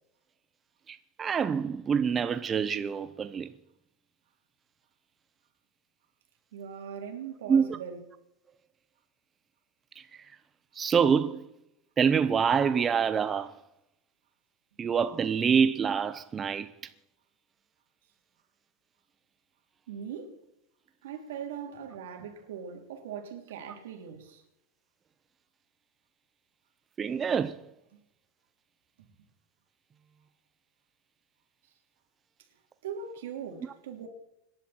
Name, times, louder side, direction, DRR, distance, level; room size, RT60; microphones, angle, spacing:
voice 1, 0.9-3.5 7.5-7.6 10.8-11.4 12.0-13.5 14.8-16.7 27.0-27.5, right 6 dB, 20° right, 0.6 m, -26 dB
voice 2, 6.5-8.0 19.9-20.4 21.0-24.4 32.8-34.1, right 7 dB, 85° right, 3.3 m, -40 dB
25.5 x 11.0 x 4.4 m
supercardioid pair, 155°, 0 cm